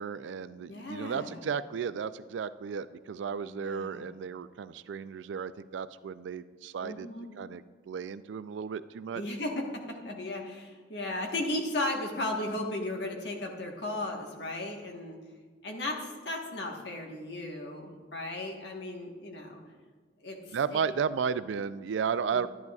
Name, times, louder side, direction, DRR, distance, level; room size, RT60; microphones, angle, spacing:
voice 1, 0.0-7.1 7.4-9.2 20.5-22.5, right 6 dB, 90° right, 14 dB, 0.3 m, -34 dB
voice 2, 0.7-1.5 3.5-4.0 6.8-7.3 9.1-15.2 15.6-19.6 20.2-20.8 22.3-22.5, left 1 dB, 70° left, 1 dB, 1.3 m, -36 dB
10.5 x 10.5 x 2.4 m, 1.5 s
head